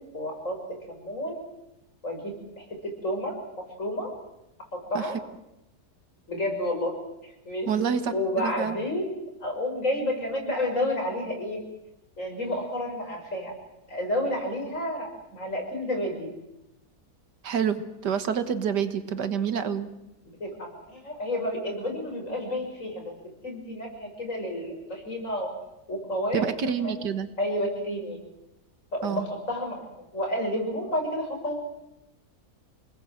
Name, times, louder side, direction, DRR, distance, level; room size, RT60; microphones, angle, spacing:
voice 1, 0.1-0.6 0.9-1.4 2.0-4.1 4.9-5.2 6.3-6.9 7.2-7.7 8.1-11.6 12.2-13.5 13.9-16.3 20.4-23.1 23.4-25.5 25.9-26.4 26.8-27.0 27.4-28.2 28.9-31.7, left 1 dB, 50° left, 1 dB, 6.8 m, -30 dB
voice 2, 7.7-8.8 17.4-19.9 26.3-27.3 29.0-29.3, right 7 dB, 90° right, 10 dB, 2.0 m, -28 dB
28.0 x 19.5 x 7.9 m, 0.91 s
omnidirectional pair, 1.8 m